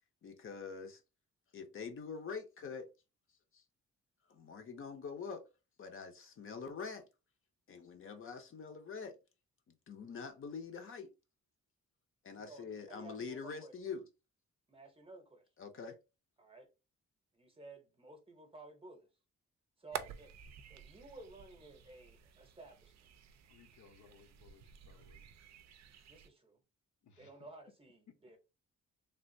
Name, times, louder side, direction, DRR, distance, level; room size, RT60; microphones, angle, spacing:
voice 1, 0.2-1.0 1.5-2.9 3.5-3.6 4.3-5.5 5.8-7.1 7.7-9.2 9.7-11.1 12.2-14.0 15.6-16.0, left 5 dB, 45° left, 0.6 m, -45 dB
voice 2, 12.3-13.7 14.7-15.5 16.4-16.7 17.3-19.1 19.8-20.3 20.7-23.1 26.1-26.6 27.2-28.4, right 3 dB, 20° right, 0.7 m, -55 dB
sound 1, 19.9-26.3, right 8 dB, 65° right, 0.4 m, -50 dB
voice 3, 23.5-25.2 27.0-27.3, left 6 dB, 80° left, 0.8 m, -63 dB
3.3 x 2.4 x 2.6 m
wide cardioid pair, 150°, 29 cm